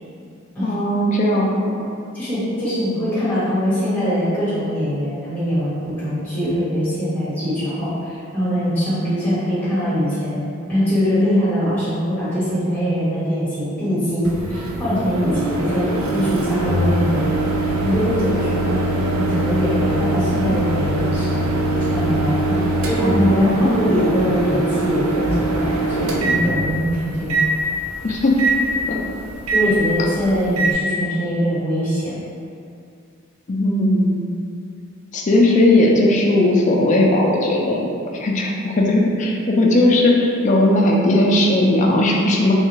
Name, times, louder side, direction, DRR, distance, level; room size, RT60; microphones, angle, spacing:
voice 1, 0.6-1.9 28.0-28.3 28.9-29.0 33.5-34.3 35.1-42.5, left 1 dB, 35° left, -1 dB, 0.3 m, -17 dB
voice 2, 2.1-17.2 17.7-18.8 19.1-21.4 21.9-22.4 22.8-27.5 29.5-32.2, equal, 10° left, -12 dB, 1.2 m, -22 dB
Microwave oven, 14.2-30.7, right 2 dB, 85° right, 0.4 m, -22 dB
3.3 x 2.3 x 3.0 m, 2.4 s
head